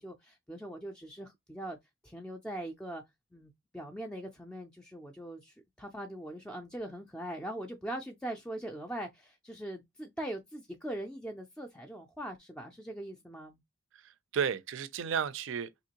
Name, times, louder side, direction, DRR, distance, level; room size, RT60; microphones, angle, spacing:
voice 1, 0.0-1.8 2.0-3.0 3.3-13.6, right 1 dB, 5° left, 0.4 m, -41 dB
voice 2, 13.9-15.9, right 7 dB, 70° right, 0.4 m, -33 dB
3.5 x 2.9 x 2.8 m
head